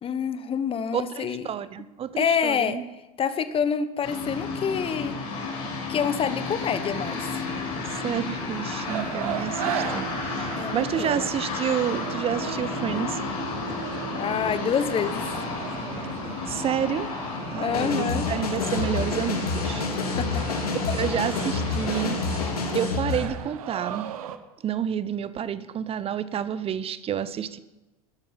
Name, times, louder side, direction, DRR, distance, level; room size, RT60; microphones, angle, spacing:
voice 1, 0.0-1.4 2.2-2.8 3.2-5.2 5.9-7.4 10.6-11.3 14.1-15.4 17.6-18.3 20.1-20.9, left 7 dB, 30° left, 12 dB, 1.2 m, -27 dB
voice 2, 0.9-2.9 7.9-13.2 16.5-17.1 17.5-19.8 20.9-22.5 22.7-24.1 24.6-27.6, right 9 dB, 30° right, 15 dB, 0.9 m, -29 dB
sound 1, 4.0-22.8, left 3 dB, 60° left, 5.1 m, -32 dB
sound 2, 8.9-24.4, right 10 dB, 70° right, 1.1 m, -38 dB
sound 3, 17.7-23.3, left 4 dB, 85° left, 2.2 m, -28 dB
13.5 x 10.5 x 5.7 m, 1.1 s
hypercardioid pair, 85°, 19 cm